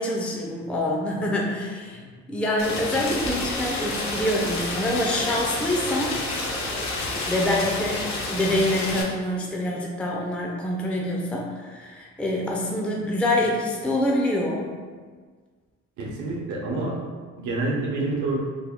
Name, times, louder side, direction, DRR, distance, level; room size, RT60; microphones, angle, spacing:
voice 1, 0.0-2.0 2.3-6.2 7.3-14.7, left 1 dB, 5° left, -2 dB, 0.4 m, -26 dB
Rain, 2.6-9.0, left 2 dB, 65° left, 0.8 m, -29 dB
voice 2, 16.0-17.0 17.4-18.4, right 2 dB, 75° right, -2 dB, 0.7 m, -27 dB
3.4 x 2.2 x 3.5 m, 1.5 s
cardioid pair, 90°, 30 cm